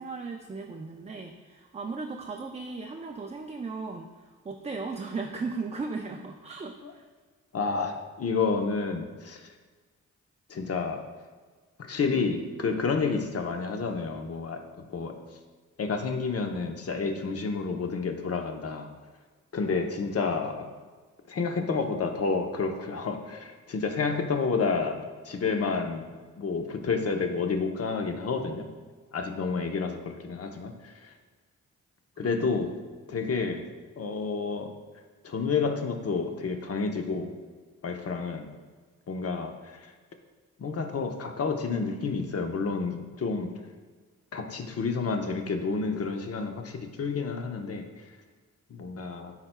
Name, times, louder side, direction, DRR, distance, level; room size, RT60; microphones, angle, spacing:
voice 1, 0.0-7.0 32.2-32.3 33.1-33.3, right 4 dB, 20° right, 2 dB, 0.5 m, -37 dB
voice 2, 7.5-9.4 10.5-11.1 11.8-15.2 15.8-18.9 19.5-20.7 21.3-26.0 26.4-28.6 29.1-31.1 32.2-32.7 33.1-33.6 34.0-34.7 35.2-37.3 37.8-38.5 39.1-39.8 40.6-43.5 44.3-47.8 48.7-49.3, left 4 dB, 50° left, 5 dB, 0.8 m, -30 dB
9.8 x 4.4 x 2.2 m, 1.4 s
cardioid pair, 60°, 31 cm